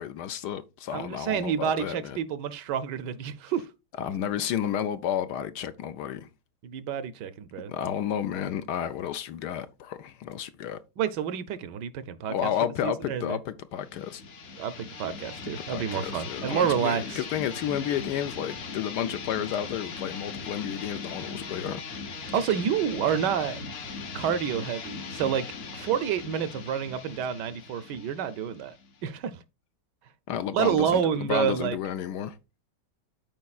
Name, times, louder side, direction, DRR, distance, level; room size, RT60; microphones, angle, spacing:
voice 1, 0.0-2.2 4.0-6.3 7.7-10.8 12.3-14.2 15.7-21.8 30.3-32.4, left 9 dB, 70° left, 1.1 m, -31 dB
voice 2, 0.9-3.6 6.6-7.7 11.0-12.5 12.8-13.4 14.6-17.3 22.3-23.6 24.1-25.4 25.7-28.7 29.0-29.4 30.5-31.8, right 8 dB, 75° right, 1.2 m, -28 dB
sound 1, 13.8-29.2, left 4 dB, 50° left, 0.8 m, -39 dB
13.0 x 4.5 x 2.3 m
omnidirectional pair, 2.0 m